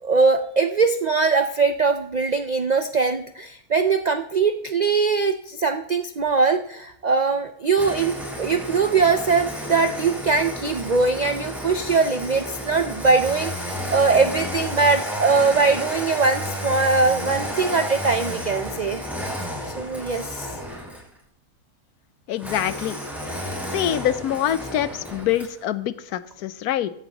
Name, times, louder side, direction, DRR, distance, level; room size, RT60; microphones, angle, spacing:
voice 1, 0.0-19.0 19.8-20.5, right 4 dB, 80° right, 8 dB, 0.3 m, -21 dB
Engine starting, 7.7-21.1 22.4-25.6, equal, ahead, 5.7 m, -32 dB
voice 2, 22.3-23.0 23.7-26.9, left 11 dB, 85° left, 14 dB, 1.2 m, -25 dB
16.0 x 11.0 x 2.9 m, 0.72 s
omnidirectional pair, 1.6 m